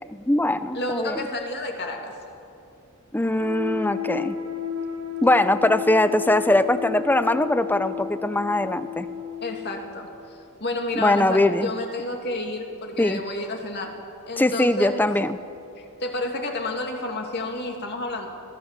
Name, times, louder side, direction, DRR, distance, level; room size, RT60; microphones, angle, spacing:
voice 1, 0.1-1.2 3.1-4.4 5.2-9.1 11.0-11.7 13.0-13.2 14.4-15.4, left 1 dB, 10° left, 12 dB, 0.6 m, -21 dB
voice 2, 0.7-2.2 9.4-14.0 14.3-15.0 15.8-18.3, left 2 dB, 50° left, 2 dB, 2.5 m, -30 dB
sound 1, 3.4-9.7, left 7 dB, 55° right, 1.7 m, -33 dB
22.0 x 16.5 x 7.5 m, 2.7 s
head